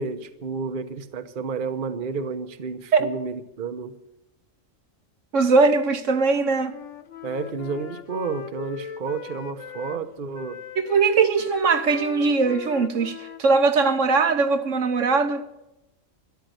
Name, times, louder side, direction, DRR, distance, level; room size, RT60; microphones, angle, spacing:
voice 1, 0.0-4.0 7.2-10.6, right 4 dB, 45° right, 1.0 m, -31 dB
voice 2, 5.3-6.8 10.8-15.4, right 4 dB, 70° right, 1.3 m, -20 dB
Wind instrument woodwind instrument, 6.2-10.0 10.3-14.8, left 7 dB, 65° left, 1.2 m, -40 dB
13.0 x 11.5 x 7.9 m
omnidirectional pair, 1.4 m